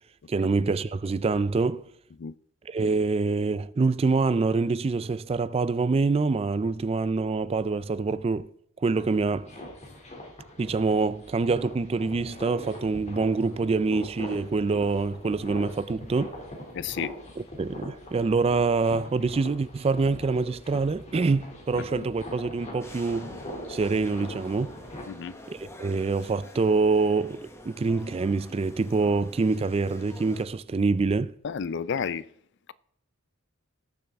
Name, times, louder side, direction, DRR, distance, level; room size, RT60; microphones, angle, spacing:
voice 1, 0.3-1.8 2.7-8.5 8.8-9.5 10.6-16.4 17.6-23.3 23.7-24.7 25.5-31.3, right 4 dB, 25° right, 0.3 m, -25 dB
sound 1, 8.9-25.0, left 1 dB, 30° left, 2.5 m, -42 dB
voice 2, 16.7-17.1 21.7-21.8 25.1-25.4 31.4-32.3, left 6 dB, 55° left, 0.4 m, -31 dB
sound 2, 22.8-30.5, left 1 dB, 10° left, 1.1 m, -47 dB
19.0 x 7.2 x 3.5 m
head